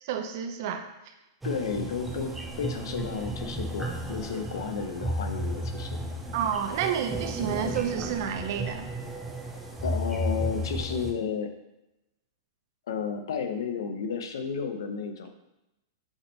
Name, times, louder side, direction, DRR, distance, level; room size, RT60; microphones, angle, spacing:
voice 1, 0.0-0.8 6.3-8.9, right 8 dB, 45° right, 7 dB, 0.6 m, -30 dB
voice 2, 1.4-6.0 9.8-11.5 12.9-15.3, left 6 dB, 75° left, 6 dB, 0.8 m, -32 dB
sound 1, 1.4-11.1, right 1 dB, 5° right, 0.6 m, -33 dB
7.1 x 3.6 x 4.0 m, 0.94 s
supercardioid pair, 165°, 2 cm